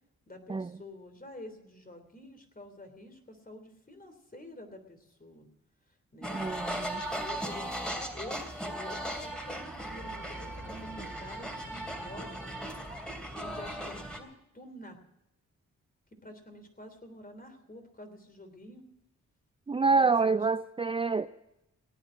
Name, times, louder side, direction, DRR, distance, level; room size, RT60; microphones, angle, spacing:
voice 1, 0.3-5.5 6.1-6.4 6.8-7.8 8.1-8.5 8.8-12.6 13.4-15.0 16.2-18.8 19.8-20.4, left 1 dB, 30° left, 7 dB, 3.1 m, -48 dB
sound 1, 6.2-14.2, right 1 dB, 5° left, 3.0 m, -37 dB
voice 2, 6.3-7.0 19.7-21.3, right 4 dB, 20° right, 12 dB, 0.4 m, -27 dB
18.0 x 9.1 x 6.3 m, 0.87 s
cardioid pair, 55°, 31 cm